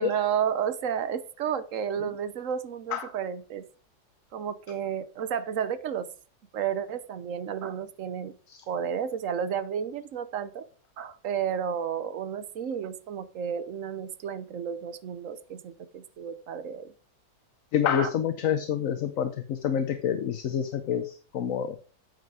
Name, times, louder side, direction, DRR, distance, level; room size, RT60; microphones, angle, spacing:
voice 1, 0.0-3.6 4.3-6.1 6.5-8.3 8.7-10.6 11.0-16.9 18.0-18.1, right 8 dB, 60° right, 14 dB, 1.1 m, -32 dB
voice 2, 17.7-21.8, left 9 dB, 60° left, 9 dB, 1.1 m, -28 dB
9.0 x 8.1 x 4.8 m, 0.39 s
omnidirectional pair, 1.7 m